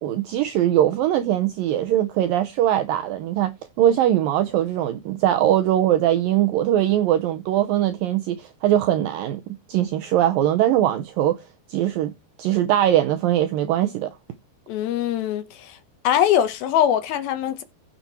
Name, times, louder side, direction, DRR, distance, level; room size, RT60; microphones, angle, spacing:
voice 1, 0.0-11.4 11.7-12.1 12.4-14.1, right 12 dB, 90° right, 2.0 m, -21 dB
voice 2, 14.7-15.8 16.0-17.6, left 10 dB, 70° left, 2.4 m, -22 dB
15.0 x 6.9 x 4.4 m
omnidirectional pair, 5.0 m